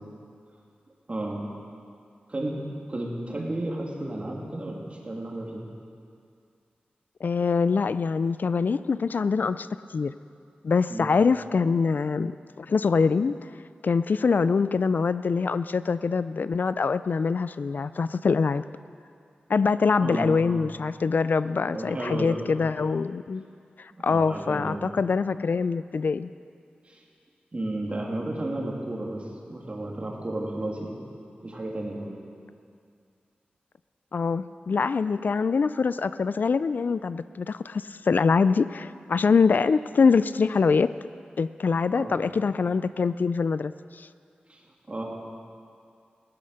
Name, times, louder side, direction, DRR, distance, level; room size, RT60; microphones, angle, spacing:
voice 1, 1.1-1.4 2.3-2.6 2.9-5.7 10.9-11.1 20.0-20.4 21.7-22.4 23.9-25.0 26.8-27.0 27.5-31.0 31.4-32.1 41.9-42.2 44.5-45.0, right 1 dB, 35° right, -2 dB, 2.8 m, -33 dB
voice 2, 7.2-10.1 10.6-12.3 12.6-13.4 13.8-18.6 19.5-23.4 23.8-26.3 34.1-40.9 41.4-44.1, left 5 dB, 65° left, 14 dB, 0.3 m, -24 dB
15.5 x 11.5 x 6.6 m, 2.4 s
cardioid pair, 60°, 3 cm